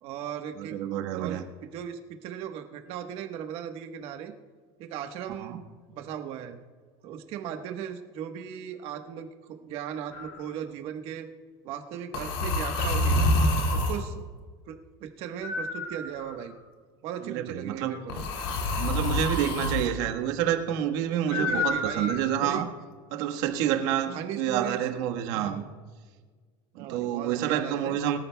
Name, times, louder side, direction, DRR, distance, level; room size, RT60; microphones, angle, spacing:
voice 1, 0.0-0.8 1.1-4.3 4.8-5.6 5.9-6.6 7.0-11.3 11.6-13.3 13.7-14.2 14.7-16.5 17.0-18.2 19.0-19.3 20.0-20.1 21.3-22.6 23.8-24.8 25.3-25.7 26.8-28.0, right 9 dB, 55° right, 1.3 m, -37 dB
voice 2, 0.6-1.4 5.4-5.6 17.2-17.9 18.7-22.7 23.1-25.6 26.7-28.2, right 10 dB, 75° right, 1.4 m, -28 dB
sound 1, 10.1-10.4 12.1-14.0 15.4-16.5 18.1-19.9 21.3-22.5, left 1 dB, 80° left, 2.2 m, -27 dB
23.0 x 13.5 x 2.3 m
cardioid pair, 150°, 12 cm